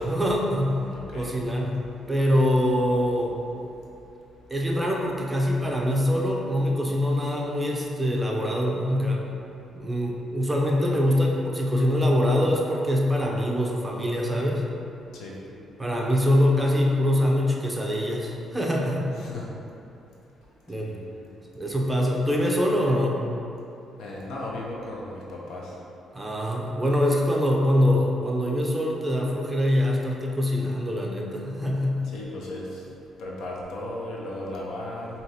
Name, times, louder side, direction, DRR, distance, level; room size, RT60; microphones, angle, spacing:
voice 1, 0.0-0.8 1.1-1.8 2.1-3.4 4.5-9.2 9.7-14.6 15.8-19.1 20.7-20.9 21.5-23.2 26.1-32.1, left 1 dB, 15° right, -2 dB, 0.5 m, -24 dB
voice 2, 0.9-1.3 15.1-15.3 19.1-19.5 20.8-21.0 24.0-25.7 32.1-32.8 33.2-35.1, left 1 dB, 75° left, -3 dB, 0.7 m, -36 dB
4.6 x 2.8 x 2.8 m, 2.7 s
cardioid pair, 90°, 0 cm